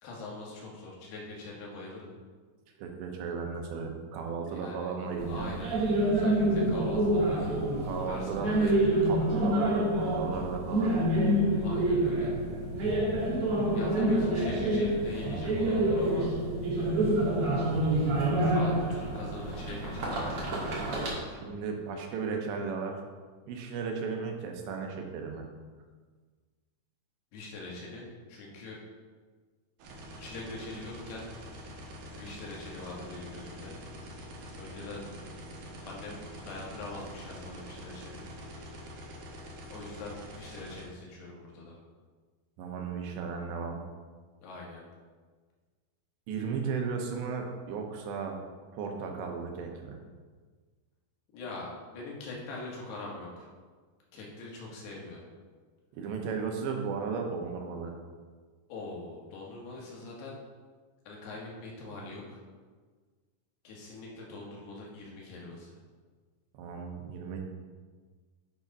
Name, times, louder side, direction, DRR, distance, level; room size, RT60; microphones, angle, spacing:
voice 1, 0.0-2.1 4.5-4.9 5.3-5.7 6.0-7.6 8.1-9.2 11.6-12.3 13.7-16.3 16.8-17.6 18.4-20.3 27.3-28.8 30.2-31.3 32.2-33.8 34.1-34.2 34.6-35.0 35.9-38.3 39.7-41.8 44.4-44.8 51.3-53.5 54.1-55.3 58.7-60.4 61.1-62.4 63.6-65.8, left 2 dB, 75° left, -3 dB, 3.6 m, -43 dB
voice 2, 2.8-5.5 7.8-8.5 9.0-10.9 21.3-23.0 23.5-25.5 42.6-43.8 46.3-48.4 48.7-50.0 55.9-57.9 66.6-67.4, right 5 dB, 90° right, 3 dB, 3.2 m, -35 dB
sound 1, 5.2-21.1, right 1 dB, 50° right, 1.9 m, -27 dB
sound 2, 29.8-40.8, equal, 65° right, 2.6 m, -45 dB
8.2 x 5.0 x 5.3 m, 1.5 s
omnidirectional pair, 4.8 m